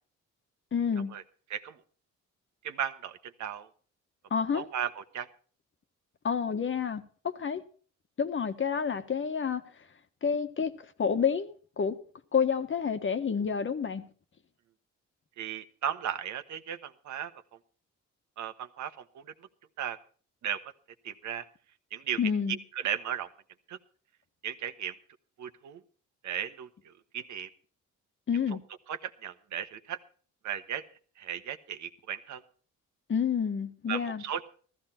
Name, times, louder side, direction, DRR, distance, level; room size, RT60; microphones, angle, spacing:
voice 1, 0.7-1.1 4.3-4.6 6.2-7.6 8.2-9.6 10.2-10.7 11.0-11.9 12.3-14.0 22.2-22.6 28.3-28.6 33.1-34.2, left 6 dB, 40° left, 1.4 m, -29 dB
voice 2, 2.6-3.7 4.5-5.3 15.4-17.3 18.4-19.2 19.8-20.0 20.4-20.6 21.0-21.4 21.9-22.2 22.5-23.3 23.7-23.8 24.4-24.9 25.4-25.8 26.2-27.5 28.9-30.0 30.4-30.8 31.2-32.4 33.9-34.5, right 9 dB, 70° right, 1.3 m, -36 dB
14.5 x 14.0 x 4.4 m
cardioid pair, 90°, 30 cm